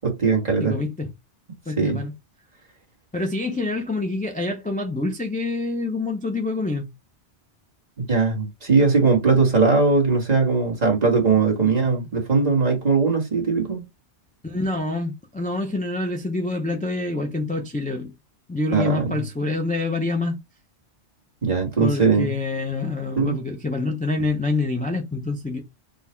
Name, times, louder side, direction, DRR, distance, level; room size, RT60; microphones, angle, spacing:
voice 1, 0.0-0.8 1.8-2.0 8.0-13.8 18.7-19.2 21.4-22.3 23.1-23.4, right 4 dB, 35° right, 1.5 m, -20 dB
voice 2, 0.6-1.1 1.7-2.1 3.1-6.9 11.6-11.7 14.4-18.1 18.5-20.4 21.8-25.6, left 2 dB, 10° left, 0.4 m, -26 dB
3.9 x 2.3 x 4.3 m
omnidirectional pair, 1.2 m